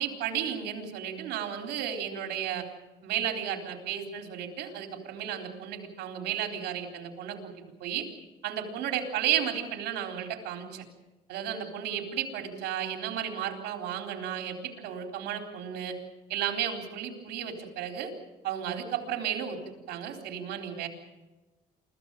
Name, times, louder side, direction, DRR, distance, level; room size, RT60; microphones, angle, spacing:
voice 1, 0.0-2.7 3.0-7.5 7.8-8.1 8.4-10.8 11.3-16.0 16.3-18.1 18.4-19.6 19.9-20.9, right 9 dB, 80° right, 4 dB, 4.0 m, -33 dB
25.0 x 15.5 x 8.9 m, 1.1 s
cardioid pair, 110°, 17 cm